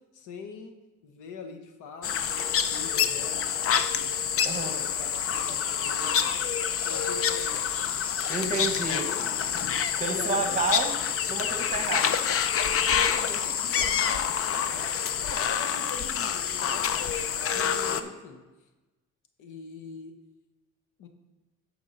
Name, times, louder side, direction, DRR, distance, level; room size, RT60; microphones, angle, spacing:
voice 1, 0.1-0.7 1.0-4.1 4.7-6.2 6.8-8.3 8.8-9.3 10.1-10.8 11.9-12.1 12.9-14.9 15.2-18.4 19.4-20.1 21.0-21.1, left 4 dB, 80° left, 6 dB, 1.1 m, -43 dB
sound 1, 2.0-18.0, left 8 dB, 50° left, 0.6 m, -27 dB
voice 2, 4.4-4.8 8.3-9.0 10.0-10.9 11.3-12.1 17.5-18.1, right 3 dB, 25° right, 5 dB, 1.3 m, -30 dB
12.0 x 4.7 x 4.1 m, 1.1 s
cardioid pair, 95°, 30 cm